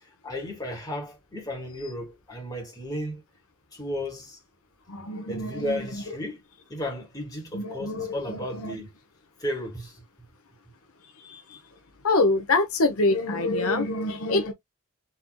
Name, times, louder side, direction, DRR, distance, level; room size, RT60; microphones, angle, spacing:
voice 1, 0.2-3.2 3.7-4.4 5.3-6.4 6.7-8.9 9.4-10.0, left 1 dB, 15° left, 2.5 m, -34 dB
voice 2, 4.9-5.9 7.5-8.8 11.2-11.6 12.0-14.5, left 2 dB, 75° left, 1.0 m, -26 dB
4.3 x 4.0 x 2.3 m
head